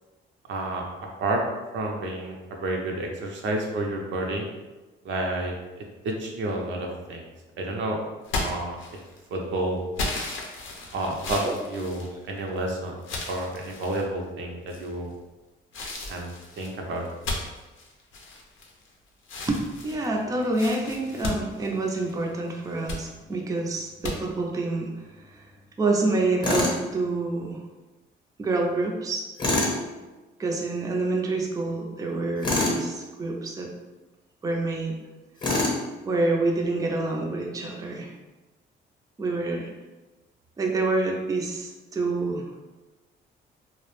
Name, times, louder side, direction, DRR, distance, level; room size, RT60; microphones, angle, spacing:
voice 1, 0.5-0.9 1.2-1.4 1.7-4.5 5.0-5.5 6.0-7.3 7.6-8.0 8.4-8.8 9.3-9.8 10.9-13.0 13.3-15.1 16.0-16.3 16.6-17.0, right 2 dB, 70° right, 1 dB, 0.5 m, -30 dB
sound 1, 8.2-9.3 10.0-12.6 13.0-14.0 14.7-15.1 15.7-18.9 19.2-22.2 22.6-23.0 24.0-24.1, left 2 dB, 80° left, 0.5 m, -34 dB
voice 2, 19.5-25.5 25.8-27.6 28.4-29.3 30.4-33.7 34.4-35.0 36.1-38.1 39.2-39.7 40.6-42.5, right 2 dB, 15° right, 0 dB, 0.4 m, -27 dB
Tools, 26.4-26.8 29.4-29.8 32.4-32.8 35.4-35.8, left 2 dB, 25° left, 0.8 m, -24 dB
2.4 x 2.0 x 3.0 m, 1.1 s
cardioid pair, 90°, 20 cm